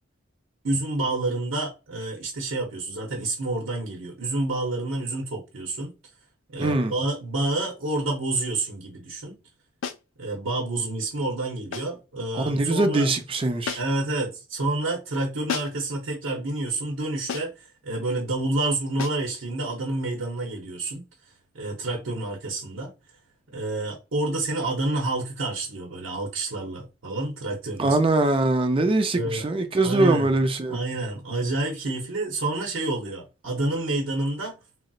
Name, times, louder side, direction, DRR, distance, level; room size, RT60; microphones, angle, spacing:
voice 1, 0.6-5.9 6.5-9.4 10.2-13.1 13.8-21.0 21.5-22.9 23.5-28.0 29.1-29.5 29.8-30.3 30.7-34.6, right 2 dB, 80° right, 0.8 m, -28 dB
voice 2, 6.6-6.9 12.3-13.8 27.8-30.8, right 2 dB, 25° right, 0.4 m, -22 dB
sound 1, 9.8-10.1 11.7-12.0 13.6-14.1 15.5-15.9 17.3-17.6 19.0-19.3, left 6 dB, 70° left, 0.3 m, -33 dB
3.9 x 2.0 x 2.3 m
head